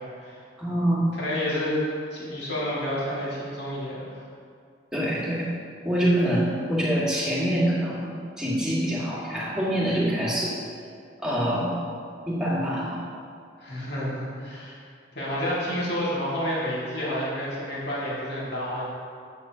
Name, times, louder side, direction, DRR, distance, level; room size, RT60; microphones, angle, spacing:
voice 1, 0.0-0.4 1.1-1.8 2.1-4.2 13.6-14.8 15.1-18.9, equal, 65° left, -7 dB, 2.0 m, -30 dB
voice 2, 0.6-1.1 4.9-5.5 5.8-8.1 8.4-10.6 11.2-11.8 12.3-13.0, right 1 dB, 5° right, -8 dB, 1.7 m, -25 dB
9.4 x 8.3 x 2.8 m, 2.3 s
head